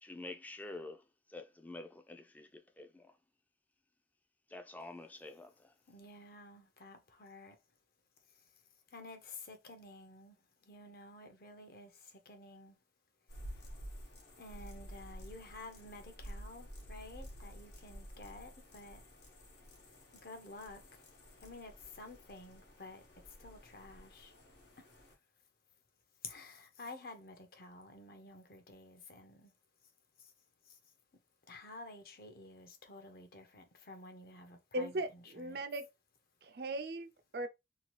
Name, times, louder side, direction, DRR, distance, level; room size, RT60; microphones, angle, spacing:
voice 1, 0.0-3.2 4.5-5.7, left 2 dB, 10° left, 0.3 m, -48 dB
voice 2, 5.9-7.6 8.3-8.6 8.9-12.8 14.4-19.0 20.2-21.1 21.4-24.3 24.8-24.9 26.2-29.5 30.2-30.3 30.6-30.8 31.5-35.6, left 2 dB, 55° left, 0.6 m, -52 dB
sound 1, 13.3-25.1, equal, 75° left, 1.0 m, -51 dB
voice 3, 34.7-35.9 36.4-37.5, right 1 dB, 65° right, 0.5 m, -38 dB
2.8 x 2.3 x 3.0 m
head